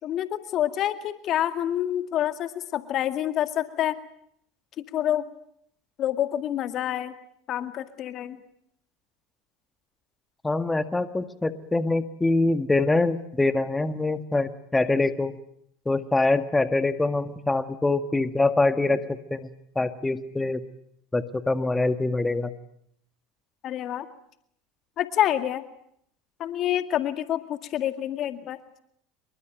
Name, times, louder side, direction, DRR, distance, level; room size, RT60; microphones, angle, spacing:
voice 1, 0.0-4.0 4.8-5.2 6.0-7.1 7.5-8.4 23.6-24.1 25.0-25.6 26.4-28.6, left 11 dB, 45° left, 10 dB, 2.1 m, -27 dB
voice 2, 10.4-15.3 15.9-19.0 19.3-19.5 19.8-20.6 21.1-22.5, left 2 dB, 10° left, 10 dB, 1.8 m, -24 dB
26.5 x 23.0 x 9.1 m, 0.71 s
hypercardioid pair, 80°, 0 cm